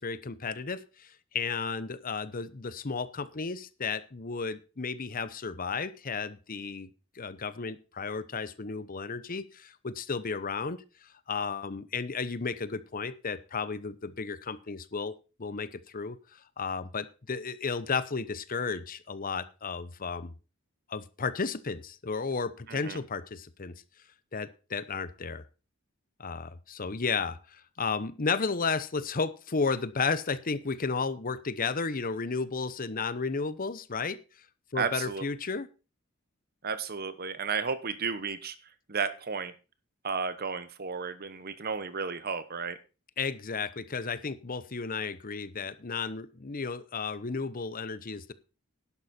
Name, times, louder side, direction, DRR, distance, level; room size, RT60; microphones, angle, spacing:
voice 1, 0.0-6.9 7.2-10.8 11.3-15.1 15.4-20.3 20.9-23.7 24.3-25.4 26.2-34.2 34.7-35.7 43.2-48.3, left 4 dB, 45° left, 15 dB, 0.9 m, -33 dB
voice 2, 22.7-23.0 34.7-35.2 36.6-38.5 38.9-39.5 40.0-42.8, right 5 dB, 50° right, 13 dB, 1.1 m, -33 dB
11.5 x 11.0 x 4.3 m, 0.33 s
head